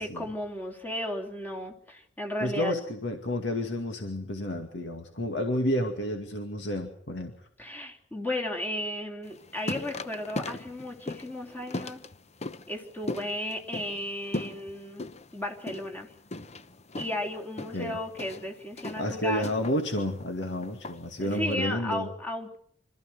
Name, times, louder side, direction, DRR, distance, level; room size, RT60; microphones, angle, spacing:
voice 1, 0.0-2.7 7.6-12.0 12.7-16.1 17.0-19.5 21.2-22.6, left 1 dB, 10° left, 0 dB, 3.4 m, -34 dB
voice 2, 2.4-7.3 17.7-18.0 19.0-22.1, left 1 dB, 80° left, 4 dB, 2.3 m, -30 dB
sound 1, 9.2-21.5, left 2 dB, 35° left, 0.9 m, -39 dB
26.0 x 14.0 x 9.2 m, 0.64 s
head